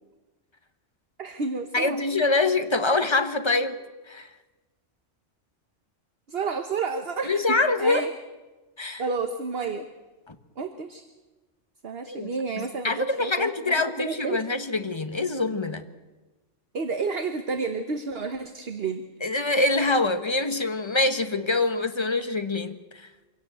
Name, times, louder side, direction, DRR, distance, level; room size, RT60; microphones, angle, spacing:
voice 1, 1.2-2.0 6.3-8.1 9.0-9.9 10.6-11.0 11.8-14.4 16.7-19.0, right 4 dB, 55° right, 7 dB, 1.3 m, -31 dB
voice 2, 1.7-3.8 4.1-4.3 7.2-8.0 8.8-9.0 10.3-10.4 12.1-12.3 12.6-15.8 19.2-23.1, left 3 dB, 25° left, 8 dB, 1.3 m, -25 dB
25.0 x 17.0 x 8.0 m, 1.2 s
omnidirectional pair, 1.3 m